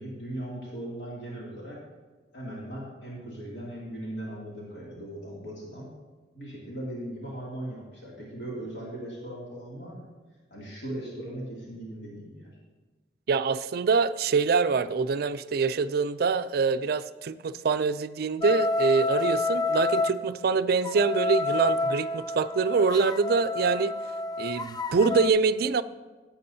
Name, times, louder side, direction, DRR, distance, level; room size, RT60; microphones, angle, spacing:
voice 1, 0.0-1.8 2.3-5.9 6.3-10.1 10.5-12.5, right 1 dB, 70° left, -6 dB, 2.5 m, -38 dB
voice 2, 13.3-24.0 24.4-25.8, right 5 dB, 60° right, 13 dB, 0.4 m, -25 dB
sound 1, 18.4-20.2 20.8-25.3, left 3 dB, 25° left, 0.4 m, -28 dB
15.5 x 8.4 x 2.7 m, 1.3 s
head